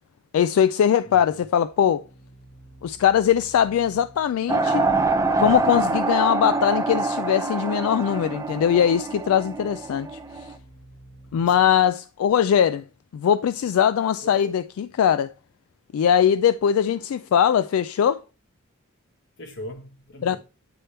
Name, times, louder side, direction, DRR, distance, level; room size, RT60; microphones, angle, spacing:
voice 1, 0.3-2.0 2.8-4.9 5.4-10.5 11.3-12.8 13.1-15.3 15.9-18.2 20.2-20.4, left 9 dB, 85° left, 0.3 m, -21 dB
voice 2, 1.0-1.5 11.5-11.7 14.2-14.4 19.4-20.4, left 1 dB, 60° left, 1.4 m, -40 dB
sound 1, 1.6-11.9, right 1 dB, 35° left, 1.5 m, -51 dB
sound 2, 4.5-10.5, right 3 dB, 15° right, 0.5 m, -25 dB
9.2 x 3.4 x 4.3 m
head